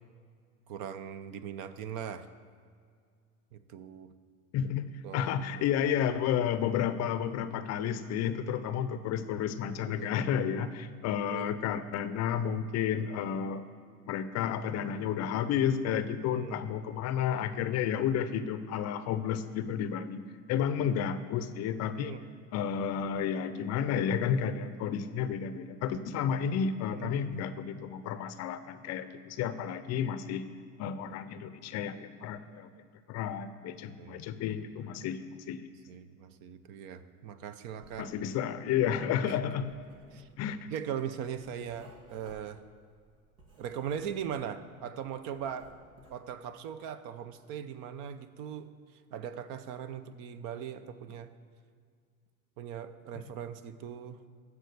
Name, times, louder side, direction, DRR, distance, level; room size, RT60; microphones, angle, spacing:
voice 1, 0.7-2.3 3.5-4.1 5.0-5.3 7.8-7.9 10.0-10.1 11.3-11.5 16.3-16.7 22.0-22.2 26.9-27.1 34.0-34.3 35.9-38.1 39.2-39.4 40.1-40.3 40.7-42.6 43.6-45.7 46.1-51.3 52.6-54.2, right 8 dB, 50° right, 12 dB, 0.8 m, -40 dB
voice 2, 4.5-13.6 14.1-20.2 20.5-22.2 22.5-30.5 30.8-32.7 33.1-35.2 35.5-35.7 38.0-39.7 40.4-40.7, left 8 dB, 40° left, 12 dB, 0.5 m, -31 dB
Writing, 37.8-38.5 38.7-44.5 44.9-46.3, right 2 dB, 80° right, 2.3 m, -58 dB
13.5 x 4.8 x 6.8 m, 2.1 s
hypercardioid pair, 95°, 43 cm